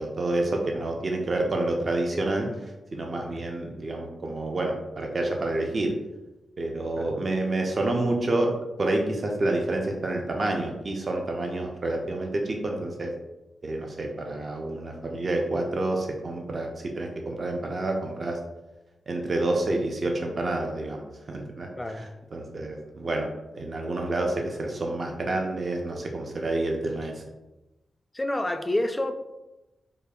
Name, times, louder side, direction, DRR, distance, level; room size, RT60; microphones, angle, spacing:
voice 1, 0.0-2.5 2.9-5.9 6.6-8.5 8.8-13.1 13.6-16.7 16.9-18.4 19.1-21.7 21.9-23.3 23.5-27.2, right 2 dB, 45° right, 1 dB, 0.5 m, -28 dB
voice 2, 28.1-29.1, left 1 dB, 15° left, 7 dB, 0.3 m, -29 dB
5.0 x 2.4 x 2.3 m, 1.0 s
cardioid pair, 95°, 0 cm